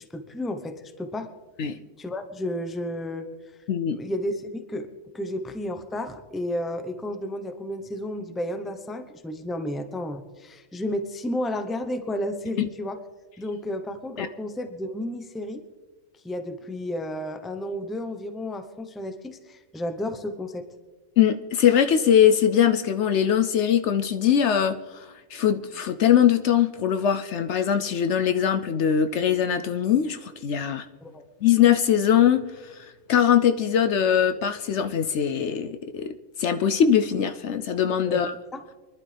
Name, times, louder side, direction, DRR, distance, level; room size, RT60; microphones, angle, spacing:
voice 1, 0.1-1.3 1.7-3.3 3.9-4.9 5.1-13.0 13.4-15.6 16.2-20.7 31.0-31.2 38.0-38.2 38.5-38.6, left 1 dB, ahead, 8 dB, 0.6 m, -32 dB
voice 2, 3.7-4.0 12.6-12.7 14.2-14.3 21.2-30.9 31.4-32.8 33.1-38.3, left 9 dB, 65° left, 9 dB, 0.9 m, -22 dB
25.5 x 11.5 x 3.4 m, 1.3 s
omnidirectional pair, 1.4 m